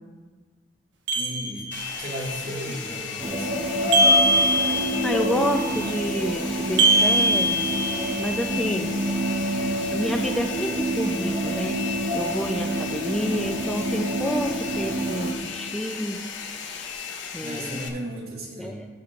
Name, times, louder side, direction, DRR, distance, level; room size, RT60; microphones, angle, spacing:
voice 1, 1.1-1.6 2.0-3.6 17.4-18.8, right 1 dB, 55° right, -4 dB, 2.2 m, -35 dB
sound 1, 1.1-2.1 3.9-5.2 6.8-8.3, right 1 dB, 85° right, 1.0 m, -21 dB
Domestic sounds home sounds, 1.7-17.9, left 6 dB, 90° left, 0.9 m, -35 dB
sound 2, 3.2-15.3, right 1 dB, 30° right, 1.1 m, -27 dB
voice 2, 5.0-7.7 8.2-8.9 9.9-11.8 12.1-16.2 17.3-17.9 18.6-18.9, equal, 5° left, 3 dB, 0.4 m, -29 dB
18.5 x 6.2 x 2.4 m, 1.4 s
head